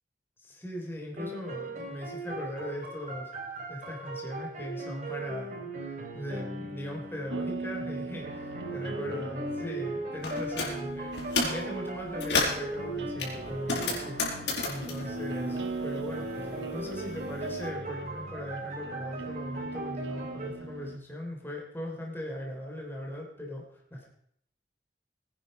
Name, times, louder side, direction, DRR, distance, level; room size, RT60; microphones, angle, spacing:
voice 1, 0.4-14.2 14.6-15.6 15.8-24.1, equal, 10° left, -1 dB, 3.4 m, -39 dB
sound 1, 1.1-7.5 8.2-14.7 15.0-20.5, right 2 dB, 40° right, 3.7 m, -39 dB
sound 2, 7.3-21.0, right 3 dB, 85° right, 1.3 m, -40 dB
sound 3, 10.2-10.7 11.1-11.6 12.0-12.7 13.2-16.1 16.4-17.5, left 3 dB, 80° left, 5.7 m, -31 dB
21.0 x 10.0 x 5.4 m, 0.70 s
head